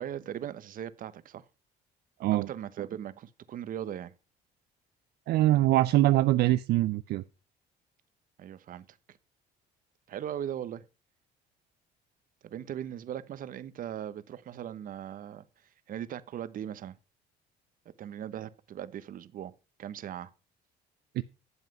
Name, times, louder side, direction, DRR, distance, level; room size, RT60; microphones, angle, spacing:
voice 1, 0.0-1.5 2.5-4.1 8.4-9.2 10.1-10.8 12.4-15.4 15.9-17.0 18.0-19.5 19.8-20.3, right 10 dB, 55° right, 1.0 m, -39 dB
voice 2, 5.3-7.2 21.2-21.3, right 15 dB, 70° right, 0.6 m, -23 dB
11.0 x 7.4 x 5.5 m
cardioid pair, 110°, 17 cm